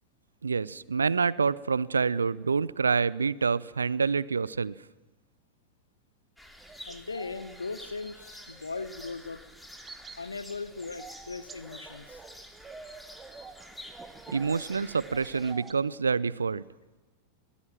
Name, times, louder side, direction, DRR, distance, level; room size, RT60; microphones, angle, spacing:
voice 1, 0.4-4.8 14.3-16.6, right 5 dB, 75° right, 21 dB, 0.6 m, -27 dB
sound 1, 6.4-15.5, equal, 5° left, 2.7 m, -49 dB
sound 2, 6.6-15.7, right 4 dB, 15° right, 1.5 m, -49 dB
voice 2, 6.9-9.4 10.2-12.2, left 4 dB, 75° left, 14 dB, 1.1 m, -38 dB
23.5 x 18.5 x 6.1 m, 1.2 s
figure-of-eight pair, 90°, 0 cm